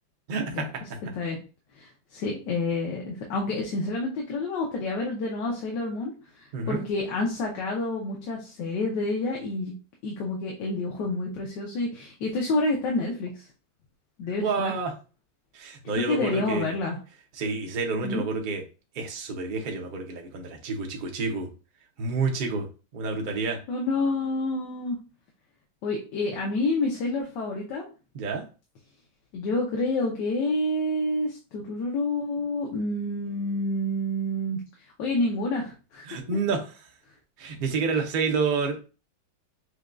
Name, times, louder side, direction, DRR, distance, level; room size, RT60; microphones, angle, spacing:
voice 1, 0.3-0.7 6.5-6.8 14.4-14.9 15.5-16.7 17.3-18.6 18.9-21.5 22.0-22.7 22.9-23.6 28.1-28.4 36.1-36.9 37.4-38.8, right 4 dB, 65° right, 2 dB, 0.5 m, -29 dB
voice 2, 1.7-9.7 10.0-13.5 14.2-14.7 15.9-17.0 18.0-18.2 23.7-25.0 25.8-27.9 29.3-34.6 35.0-36.0, left 2 dB, 80° left, -1 dB, 1.4 m, -28 dB
6.2 x 2.4 x 2.2 m, 0.33 s
omnidirectional pair, 1.9 m